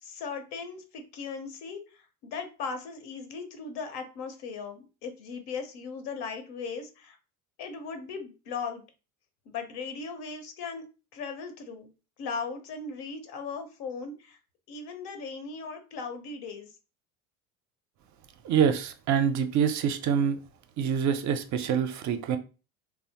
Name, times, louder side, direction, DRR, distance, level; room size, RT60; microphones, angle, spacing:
voice 1, 0.0-7.2 7.6-8.8 9.5-10.8 11.1-11.9 12.2-14.4 14.7-16.7, left 5 dB, 65° left, 0.8 m, -38 dB
voice 2, 18.4-20.4 20.8-22.4, right 7 dB, 45° right, 0.5 m, -26 dB
2.9 x 2.0 x 2.7 m
hypercardioid pair, 75°, 42 cm